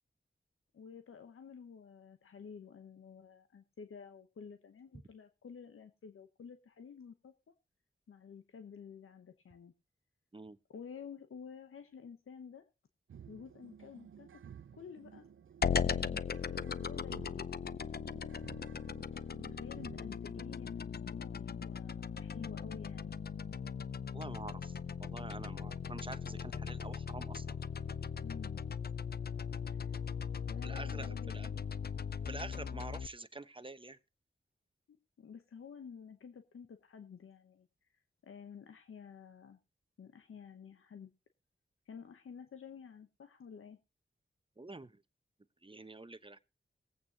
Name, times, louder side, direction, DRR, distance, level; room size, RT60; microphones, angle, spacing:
voice 1, 0.7-7.5 8.1-9.7 10.7-12.7 13.3-14.4 14.7-15.3 15.8-17.6 19.5-23.2 28.2-28.6 29.7-29.8 30.4-31.5 34.9-37.7 38.2-39.6 40.0-41.1 41.9-43.8, left 6 dB, 90° left, 0.9 m, -51 dB
sound 1, 13.1-25.7, right 8 dB, 70° right, 0.5 m, -56 dB
sound 2, 15.6-33.1, left 6 dB, 50° left, 0.5 m, -38 dB
voice 2, 24.1-24.7 25.0-27.6 30.6-31.5 32.3-34.0 44.6-45.0 45.6-46.4, right 2 dB, 25° right, 1.1 m, -47 dB
20.0 x 8.6 x 2.8 m
cardioid pair, 40°, 21 cm